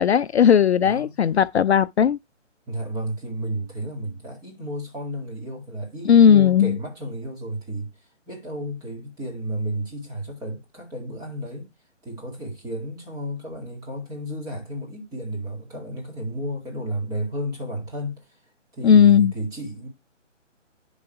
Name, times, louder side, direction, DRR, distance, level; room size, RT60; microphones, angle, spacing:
voice 1, 0.0-2.2 6.1-6.8 18.8-19.3, left 8 dB, 60° left, 0.5 m, -16 dB
voice 2, 0.8-1.1 2.7-7.9 8.3-11.7 12.0-18.4 18.7-19.9, right 1 dB, 10° right, 2.2 m, -32 dB
11.0 x 3.9 x 4.5 m
hypercardioid pair, 155°, 37 cm